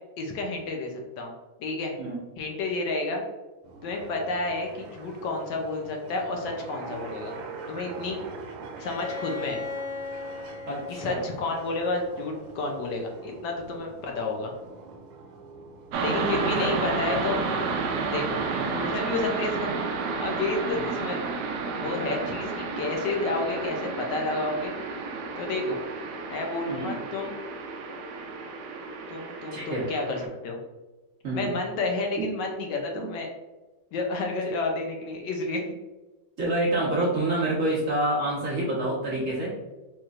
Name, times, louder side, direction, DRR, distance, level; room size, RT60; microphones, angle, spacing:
voice 1, 0.2-1.3 1.6-2.0 2.4-3.2 3.8-7.4 7.7-8.2 8.8-9.6 10.9-14.5 16.0-17.4 18.1-19.7 20.2-21.2 21.8-24.7 25.4-25.8 26.3-27.3 29.1-30.6 31.3-33.3 33.9-35.7, left 3 dB, 75° left, 2 dB, 1.2 m, -30 dB
sound 1, 3.6-18.8, right 4 dB, 90° right, 1.4 m, -44 dB
Bowed string instrument, 8.7-12.5, left 3 dB, 45° left, 0.4 m, -38 dB
voice 2, 10.7-11.2 16.2-16.8 18.5-18.8 20.7-20.9 26.7-27.0 29.5-29.8 31.2-31.5 32.2-32.3 32.9-33.1 36.4-39.5, right 1 dB, 50° right, -6 dB, 1.1 m, -28 dB
sound 2, 15.9-30.3, right 4 dB, 70° right, 1.0 m, -31 dB
4.3 x 3.0 x 2.4 m, 1.1 s
omnidirectional pair, 2.0 m